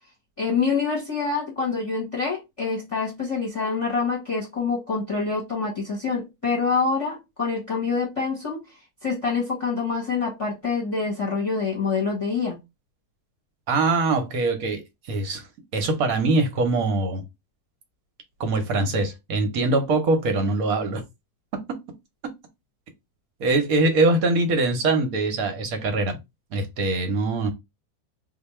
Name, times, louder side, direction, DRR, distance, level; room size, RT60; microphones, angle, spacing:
voice 1, 0.4-8.6 9.0-12.6, left 4 dB, 25° left, 1.0 m, -26 dB
voice 2, 13.7-14.8 15.1-15.4 15.7-17.2 18.4-21.0 23.4-26.2 26.5-27.5, right 3 dB, 70° right, 1.2 m, -23 dB
2.7 x 2.4 x 4.1 m
omnidirectional pair, 1.6 m